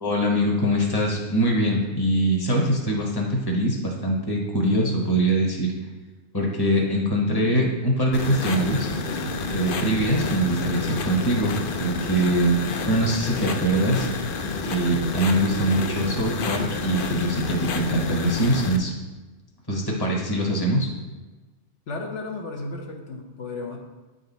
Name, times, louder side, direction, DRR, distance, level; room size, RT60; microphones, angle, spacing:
voice 1, 0.0-5.7 6.3-8.9 9.5-12.6 12.9-14.1 14.7-18.9 19.7-20.9, right 1 dB, 20° left, -1 dB, 1.1 m, -23 dB
sound 1, 8.1-18.8, left 3 dB, 60° left, 0.6 m, -29 dB
voice 2, 21.9-23.8, left 3 dB, 75° left, 0 dB, 1.2 m, -33 dB
9.4 x 4.0 x 4.0 m, 1.2 s
omnidirectional pair, 1.2 m